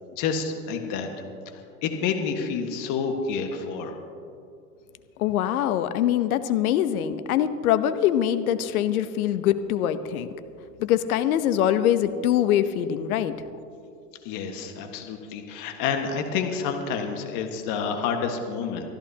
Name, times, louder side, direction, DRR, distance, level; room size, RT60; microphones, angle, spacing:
voice 1, 0.1-1.1 1.8-4.0 14.3-18.9, left 6 dB, 45° left, 5 dB, 1.6 m, -29 dB
voice 2, 5.2-10.3 10.8-13.3, left 11 dB, 65° left, 12 dB, 0.9 m, -23 dB
25.0 x 14.0 x 2.9 m, 2.5 s
hypercardioid pair, 110°, 47 cm